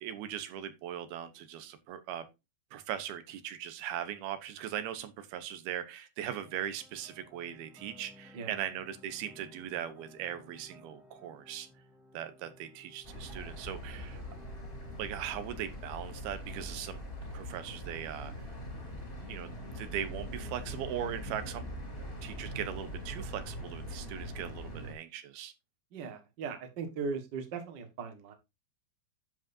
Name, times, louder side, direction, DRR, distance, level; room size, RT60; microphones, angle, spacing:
voice 1, 0.0-2.2 2.7-11.7 12.1-14.2 15.0-17.0 17.3-18.3 19.3-21.6 22.2-25.5, right 10 dB, 80° right, 10 dB, 2.9 m, -39 dB
sound 1, 6.4-16.7, left 1 dB, ahead, 1.4 m, -58 dB
sound 2, 13.0-24.9, equal, 20° left, 2.2 m, -42 dB
voice 2, 25.9-28.3, right 5 dB, 45° right, 5 dB, 1.4 m, -38 dB
10.5 x 7.5 x 2.7 m, 0.24 s
omnidirectional pair, 4.4 m